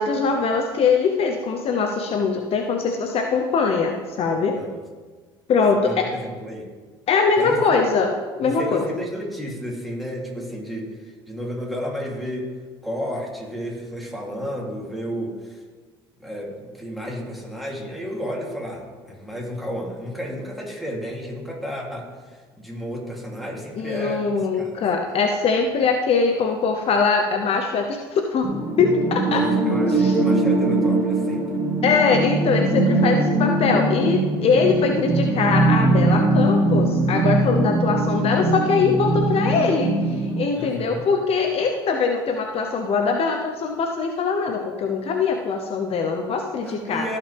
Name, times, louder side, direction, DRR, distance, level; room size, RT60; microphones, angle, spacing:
voice 1, 0.0-4.6 5.5-6.1 7.1-8.1 8.4-8.8 23.8-28.5 28.8-29.4 29.9-30.1 31.8-47.1, left 5 dB, 50° left, 4 dB, 0.9 m, -22 dB
voice 2, 4.4-4.8 5.8-6.7 7.4-7.8 8.4-12.5 12.8-15.6 16.2-24.8 29.3-31.4 40.5-41.1 46.6-47.2, equal, ahead, -3 dB, 3.1 m, -32 dB
sound 1, 28.4-40.4, right 2 dB, 20° right, 1.8 m, -21 dB
15.0 x 5.7 x 3.5 m, 1.4 s
hypercardioid pair, 65°, 13 cm